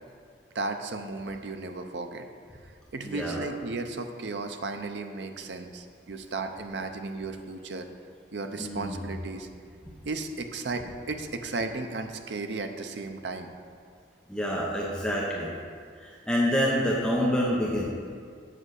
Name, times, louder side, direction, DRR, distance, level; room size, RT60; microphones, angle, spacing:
voice 1, 0.5-2.2 2.9-7.8 8.3-9.5 10.0-13.5, right 3 dB, 70° right, 6 dB, 0.6 m, -34 dB
voice 2, 3.0-3.4 8.5-9.2 10.8-10.9 14.3-15.5 16.0-17.9, equal, 5° left, -5 dB, 0.8 m, -27 dB
7.6 x 5.3 x 6.4 m, 2.2 s
head